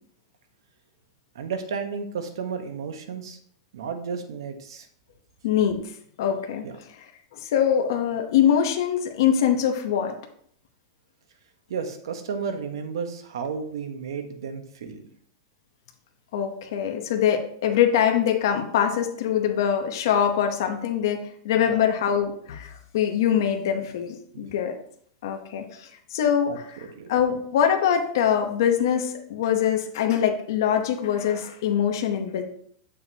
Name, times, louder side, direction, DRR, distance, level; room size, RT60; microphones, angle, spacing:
voice 1, 1.3-3.4 3.7-4.9 6.6-6.7 11.7-15.0 21.7-21.8 24.3-24.5 26.5-26.6 26.9-27.1, right 6 dB, 90° right, 7 dB, 1.1 m, -32 dB
voice 2, 5.4-5.8 6.2-6.6 7.3-10.1 16.3-24.8 25.2-32.4, left 9 dB, 60° left, 4 dB, 0.9 m, -23 dB
7.2 x 6.5 x 2.9 m, 0.63 s
supercardioid pair, 175°, 2 cm